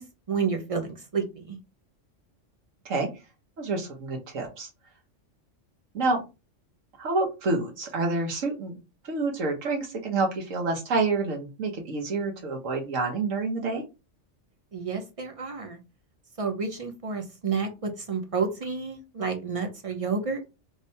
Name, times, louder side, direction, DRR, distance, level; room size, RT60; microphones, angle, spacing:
voice 1, 0.0-1.6 14.7-15.8 16.4-20.4, right 5 dB, 40° right, 5 dB, 0.5 m, -30 dB
voice 2, 3.6-4.7 5.9-6.2 7.0-8.8 9.0-13.8, right 3 dB, 85° right, 1 dB, 1.5 m, -28 dB
3.3 x 3.3 x 2.7 m, 0.27 s
omnidirectional pair, 1.3 m